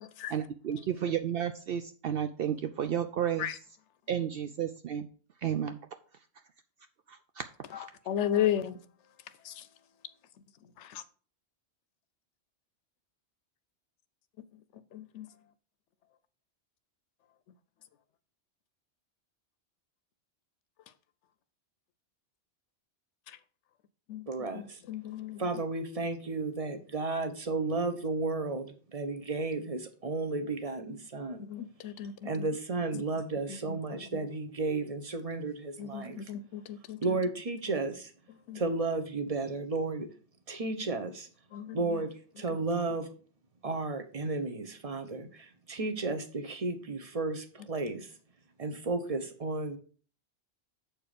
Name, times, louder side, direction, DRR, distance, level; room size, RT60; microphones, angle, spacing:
voice 1, 0.3-3.5 4.1-5.1 5.4-5.8 7.1-7.5 7.7-7.8, right 9 dB, 65° right, 0.7 m, -32 dB
voice 2, 8.1-8.8 9.4-9.5 10.8-11.0 14.9-15.3 24.1-24.2 24.5-25.4 31.5-32.5 33.7-33.8 35.8-37.0 38.5-38.6 41.5-41.8, left 10 dB, 85° left, 0.9 m, -34 dB
voice 3, 24.3-24.8 25.4-31.4 32.2-36.3 37.0-38.1 38.5-40.1 40.5-41.3 41.7-43.1 43.6-48.1 48.6-49.8, right 3 dB, 35° right, 1.0 m, -33 dB
7.4 x 4.6 x 5.1 m
omnidirectional pair, 1.2 m